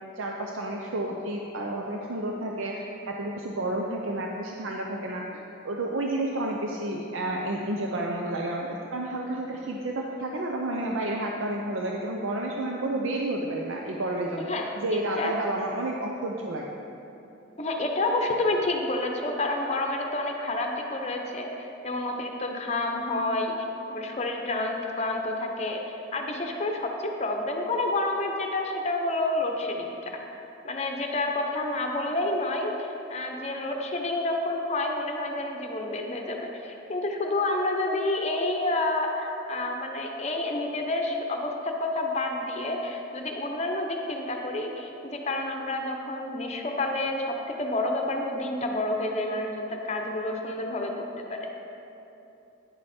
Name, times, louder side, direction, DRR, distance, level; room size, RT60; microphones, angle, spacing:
voice 1, 0.2-5.2 5.6-14.5 14.8-16.7, right 1 dB, 90° right, 0 dB, 0.6 m, -30 dB
voice 2, 17.6-21.5 21.8-23.5 23.9-30.4 30.6-32.7 33.1-50.9 51.3-51.5, left 2 dB, 35° left, 2 dB, 0.8 m, -29 dB
9.6 x 7.7 x 4.3 m, 3.0 s
head